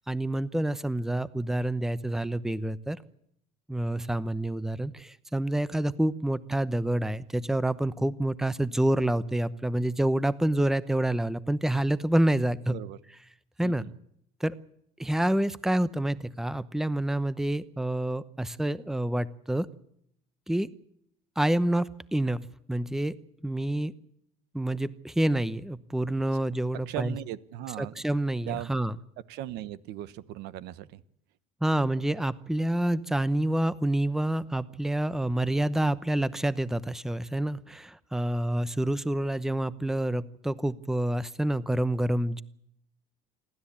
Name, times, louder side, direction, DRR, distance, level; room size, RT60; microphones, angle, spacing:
voice 1, 0.1-3.0 3.7-12.8 13.6-13.8 14.4-14.5 15.0-19.7 20.5-20.7 21.4-23.2 23.4-24.0 24.5-27.2 27.8-28.9 31.6-42.4, right 1 dB, ahead, 16 dB, 0.8 m, -28 dB
voice 2, 13.6-13.9 26.9-28.0 28.5-28.7 29.3-31.0, right 13 dB, 75° right, 16 dB, 1.1 m, -37 dB
28.0 x 13.0 x 8.7 m, 0.72 s
cardioid pair, 105°, 17 cm